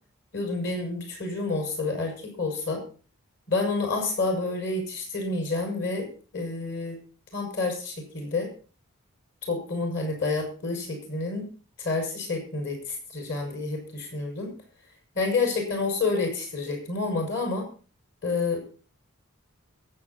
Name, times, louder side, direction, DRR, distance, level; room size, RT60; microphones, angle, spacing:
voice 1, 0.3-2.8 3.5-7.0 7.3-8.5 9.5-11.5 11.8-12.8 13.1-14.5 15.1-17.7 18.2-18.6, left 3 dB, 55° left, 2 dB, 5.9 m, -29 dB
22.0 x 8.2 x 4.2 m, 0.38 s
head